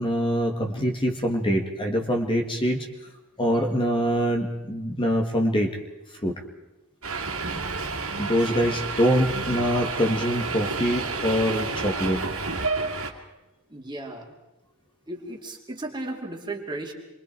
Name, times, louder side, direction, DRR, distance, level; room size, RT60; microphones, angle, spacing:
voice 1, 0.0-2.9 3.4-5.7 6.2-6.4 8.2-12.2, equal, 25° left, 2 dB, 1.8 m, -24 dB
Subway metro underground, 7.0-13.1, right 3 dB, 80° right, 2.4 m, -30 dB
voice 2, 13.7-14.3 15.1-16.9, right 2 dB, 20° right, 1 dB, 2.8 m, -35 dB
27.5 x 23.0 x 4.5 m, 1.0 s
head